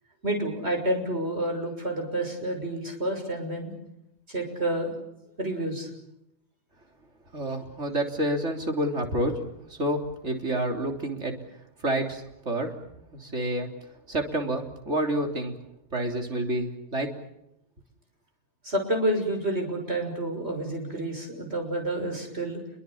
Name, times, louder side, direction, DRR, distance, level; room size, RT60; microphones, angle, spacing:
voice 1, 0.2-3.7 4.3-4.9 5.4-5.9 18.6-22.6, right 1 dB, 65° right, 4 dB, 6.7 m, -29 dB
voice 2, 7.3-9.4 9.7-11.4 11.8-12.7 13.1-13.7 14.1-15.5 15.9-17.1, right 1 dB, 90° right, 3 dB, 3.9 m, -28 dB
28.0 x 23.5 x 7.2 m, 0.81 s
omnidirectional pair, 1.2 m